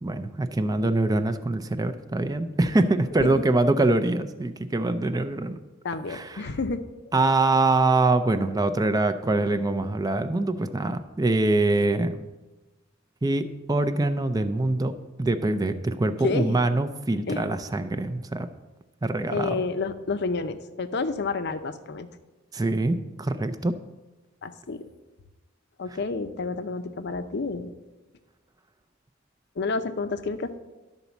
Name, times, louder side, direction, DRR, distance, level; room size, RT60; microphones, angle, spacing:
voice 1, 0.0-5.6 6.1-6.5 7.1-12.2 13.2-14.9 15.2-18.5 19.0-19.6 22.5-23.7, right 2 dB, 20° right, 10 dB, 0.4 m, -24 dB
voice 2, 5.8-6.8 16.2-16.6 17.3-17.5 19.3-22.1 24.4-24.9 25.8-27.7 29.6-30.6, left 4 dB, 55° left, 10 dB, 0.6 m, -29 dB
11.5 x 4.1 x 7.0 m, 1.1 s
head